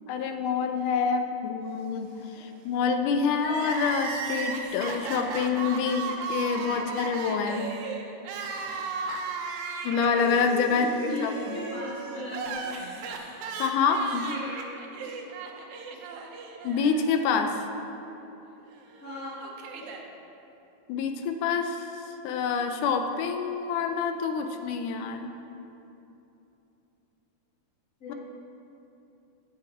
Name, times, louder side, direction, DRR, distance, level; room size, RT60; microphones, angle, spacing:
voice 1, 0.1-7.7 9.8-10.9 11.2-11.6 13.6-14.3 16.6-17.6 20.9-21.9 22.2-25.3 28.1-28.2, left 5 dB, 80° left, 6 dB, 2.0 m, -27 dB
Crying sobbing, 3.4-17.5 17.8-17.9 18.9-20.0, right 4 dB, 70° right, 2.0 m, -36 dB
voice 2, 10.7-11.2 11.5-13.0 14.2-15.1 15.9-16.0 19.0-19.4 28.0-28.1, left 2 dB, 40° left, -9 dB, 1.4 m, -38 dB
16.5 x 5.7 x 4.8 m, 2.9 s
omnidirectional pair, 3.8 m